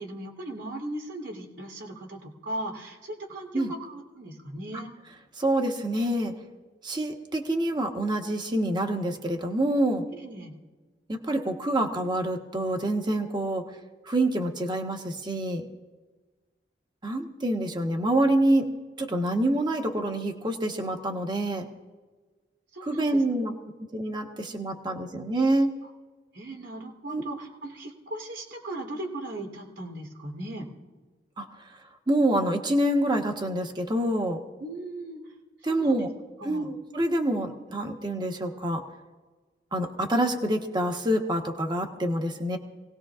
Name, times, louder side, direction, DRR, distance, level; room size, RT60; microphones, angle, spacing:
voice 1, 0.0-4.9 10.1-10.5 22.7-23.2 26.3-30.7 34.6-35.2 35.6-36.1 36.4-36.7, right 1 dB, 85° right, 0 dB, 3.4 m, -38 dB
voice 2, 5.4-6.3 6.8-10.0 11.1-13.6 14.1-15.7 17.0-18.7 19.0-21.7 22.8-23.5 23.9-25.7 27.1-27.2 31.4-31.5 32.1-34.4 35.6-36.1 36.4-38.8 39.7-42.6, right 1 dB, 25° right, 4 dB, 1.3 m, -26 dB
26.0 x 18.0 x 2.5 m, 1.3 s
head